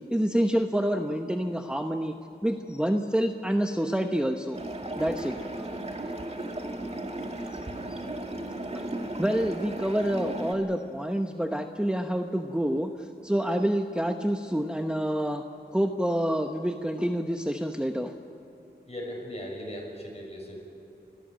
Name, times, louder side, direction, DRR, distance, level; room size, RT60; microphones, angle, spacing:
voice 1, 0.1-2.1 2.4-4.6 5.0-5.7 7.9-8.0 8.7-8.9 9.2-15.4 15.7-18.1, equal, 5° right, 4 dB, 1.0 m, -27 dB
sound 1, 4.5-10.5, right 1 dB, 40° right, 2.4 m, -35 dB
voice 2, 18.9-20.6, equal, 40° left, 0 dB, 6.5 m, -38 dB
28.5 x 13.5 x 9.1 m, 2.9 s
cardioid pair, 50°, 17 cm